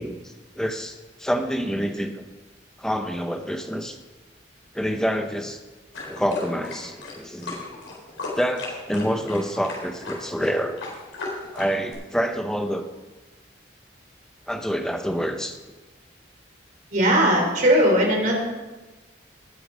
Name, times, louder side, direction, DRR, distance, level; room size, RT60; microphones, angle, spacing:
voice 1, 0.0-2.1 2.8-4.0 4.7-5.6 6.1-7.6 8.3-10.8 11.5-12.8 14.5-15.6, equal, 5° left, 5 dB, 0.8 m, -27 dB
sound 1, 5.9-11.9, left 3 dB, 85° left, 4.3 m, -35 dB
voice 2, 16.9-18.4, equal, 40° right, 0 dB, 3.3 m, -19 dB
19.0 x 6.8 x 5.0 m, 1.2 s
head